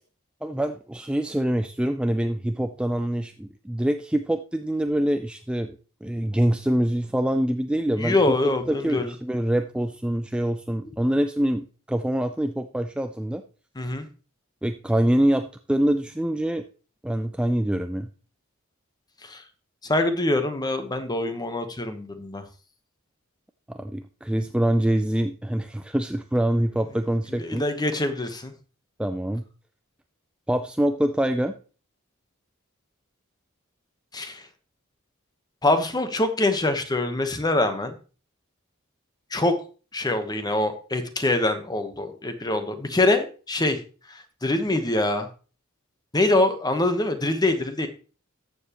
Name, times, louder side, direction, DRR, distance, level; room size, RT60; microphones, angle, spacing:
voice 1, 0.4-8.2 8.7-13.4 14.6-16.6 17.0-18.1 23.7-27.6 29.0-29.4 30.5-31.5, right 1 dB, 5° right, 8 dB, 0.3 m, -25 dB
voice 2, 8.0-9.1 13.8-14.1 19.2-19.4 19.8-22.4 27.3-28.5 34.1-34.4 35.6-38.0 39.3-39.5 39.9-43.8 44.1-45.3 46.1-47.9, left 2 dB, 20° left, 8 dB, 1.0 m, -24 dB
13.5 x 7.0 x 2.9 m, 0.36 s
head